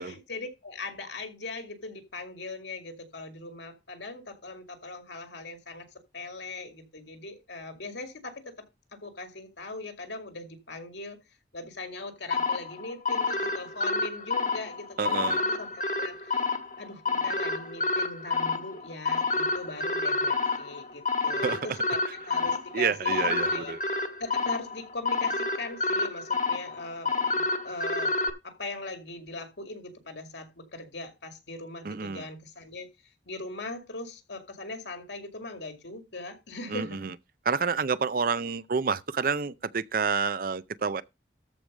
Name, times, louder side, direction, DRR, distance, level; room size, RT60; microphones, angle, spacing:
voice 1, 0.0-5.9 6.1-8.5 9.0-11.2 11.5-16.4 16.8-23.8 24.2-32.9 33.3-37.1, left 2 dB, 75° left, 2.2 m, -40 dB
sound 1, 12.3-28.3, left 3 dB, 45° left, 1.4 m, -29 dB
voice 2, 15.0-15.4 21.4-21.8 22.7-23.8 31.8-32.3 36.7-37.1 37.4-41.0, right 5 dB, 50° right, 0.5 m, -29 dB
13.5 x 4.8 x 5.3 m
head